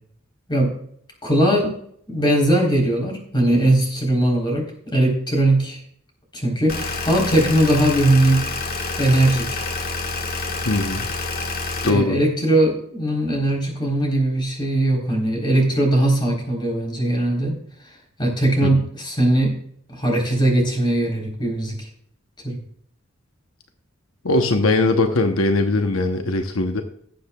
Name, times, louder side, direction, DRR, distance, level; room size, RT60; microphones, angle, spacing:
voice 1, 1.2-1.7 2.1-5.8 6.3-8.6 9.0-9.7 11.8-17.6 18.2-19.5 19.9-21.9 22.4-22.6, right 1 dB, 25° left, 0 dB, 3.9 m, -20 dB
sound 1, 6.7-11.9, left 3 dB, 50° left, 1.5 m, -28 dB
voice 2, 10.6-11.1 11.8-12.2 18.6-18.7 24.2-26.8, left 2 dB, 85° left, 6 dB, 1.0 m, -20 dB
18.5 x 7.8 x 2.4 m, 0.65 s
head